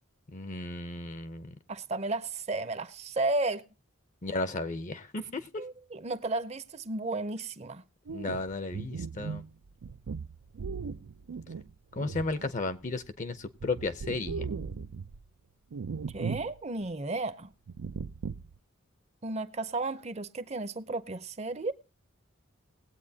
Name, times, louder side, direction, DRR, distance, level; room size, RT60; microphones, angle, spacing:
voice 1, 0.3-1.6 4.2-5.5 8.1-9.4 11.9-14.5, left 3 dB, 35° left, 0.7 m, -34 dB
voice 2, 1.7-3.6 5.6-7.8 16.1-17.5 19.2-21.7, right 2 dB, 30° right, 0.6 m, -33 dB
sound 1, 8.1-13.1 13.4-15.2 15.7-16.6 16.8-16.9 17.7-18.6, right 5 dB, 90° right, 0.5 m, -38 dB
20.5 x 8.3 x 2.8 m
head